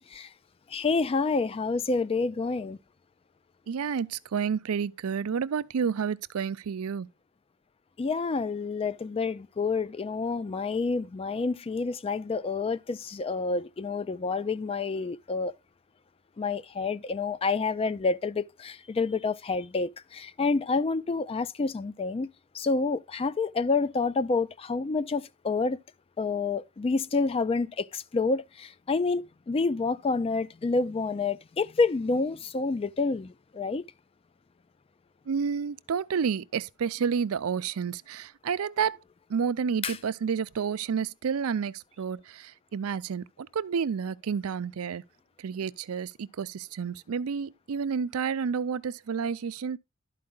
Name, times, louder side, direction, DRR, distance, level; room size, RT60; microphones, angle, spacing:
voice 1, 0.7-2.8 8.0-15.5 16.4-22.3 22.5-25.8 26.2-33.8 39.8-40.0, left 4 dB, 25° left, 0.3 m, -28 dB
voice 2, 3.7-7.1 35.3-39.0 39.3-45.0 45.4-49.8, right 6 dB, 85° right, 0.4 m, -30 dB
11.5 x 4.7 x 3.6 m
head